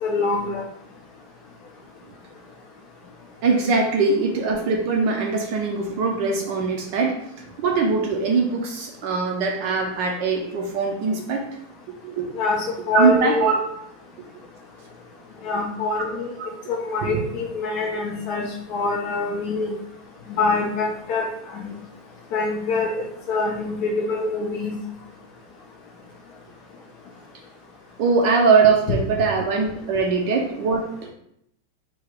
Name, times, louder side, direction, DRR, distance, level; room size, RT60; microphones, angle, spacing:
voice 1, 0.0-0.6 12.3-13.6 15.4-16.3 16.7-19.7 20.3-21.6 22.3-24.8, left 3 dB, 70° left, 0 dB, 0.9 m, -25 dB
voice 2, 3.4-7.3 7.6-11.4 12.0-12.3 12.9-13.5 17.0-17.2 28.0-31.1, right 4 dB, 70° right, 1 dB, 1.2 m, -21 dB
4.6 x 2.2 x 4.5 m, 0.73 s
omnidirectional pair, 2.3 m